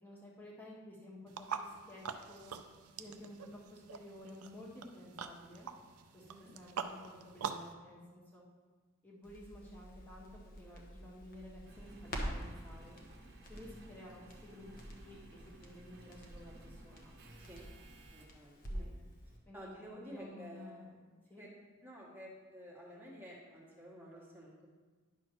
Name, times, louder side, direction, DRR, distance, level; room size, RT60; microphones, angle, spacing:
voice 1, 0.0-2.5 2.9-5.7 6.1-8.4 9.0-13.0 13.5-17.2 18.7-18.9 19.5-21.0 21.3-21.4, left 1 dB, 10° left, -5 dB, 1.4 m, -53 dB
sound 1, 1.3-7.7, right 6 dB, 85° right, 0.5 m, -45 dB
voice 2, 6.2-6.5 17.4-17.7 18.1-18.9 19.5-20.9 21.4-21.5 21.8-24.7, equal, 10° right, -4 dB, 1.4 m, -52 dB
Crackle, 9.2-19.0 19.3-19.4, equal, 40° left, 1.0 m, -48 dB
Engine, 11.6-19.5 20.1-20.2, right 1 dB, 50° right, 1.0 m, -56 dB
10.0 x 6.3 x 3.0 m, 1.4 s
head